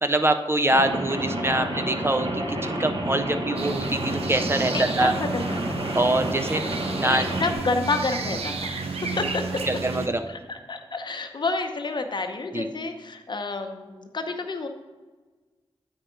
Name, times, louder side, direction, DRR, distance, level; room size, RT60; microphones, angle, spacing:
voice 1, 0.0-5.1 5.9-6.6 7.0-7.3 9.7-10.2 12.5-12.7, right 1 dB, 25° right, 8 dB, 0.5 m, -24 dB
Rain, 0.7-7.5, right 1 dB, 50° right, 1.2 m, -29 dB
sound 1, 3.6-10.1, right 4 dB, 85° right, 0.6 m, -32 dB
voice 2, 4.7-6.0 7.0-9.6 10.3-14.7, left 3 dB, 50° left, 5 dB, 0.8 m, -30 dB
8.7 x 4.4 x 5.1 m, 1.3 s
cardioid pair, 70°, 10 cm